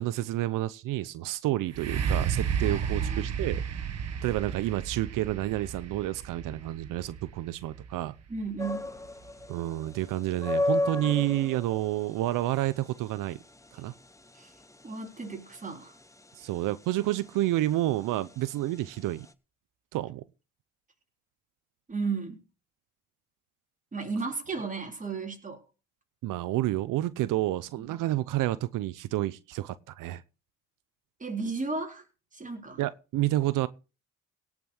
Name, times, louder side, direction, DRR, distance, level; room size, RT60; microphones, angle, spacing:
voice 1, 0.0-3.6 4.2-8.1 9.5-13.4 13.7-13.9 16.4-19.3 19.9-20.2 26.2-30.2 32.8-33.7, right 15 dB, 90° right, 0.7 m, -29 dB
sound 1, 1.7-9.5 10.1-10.2, right 7 dB, 55° right, 1.5 m, -33 dB
voice 2, 2.6-3.3 8.3-8.9 14.3-14.5 14.8-16.0 21.9-22.4 23.9-25.6 31.2-32.0 32.3-32.8, right 4 dB, 25° right, 4.0 m, -34 dB
sound 2, 8.6-19.3, left 2 dB, 10° left, 1.0 m, -35 dB
17.5 x 6.1 x 6.4 m
cardioid pair, 100°, 31 cm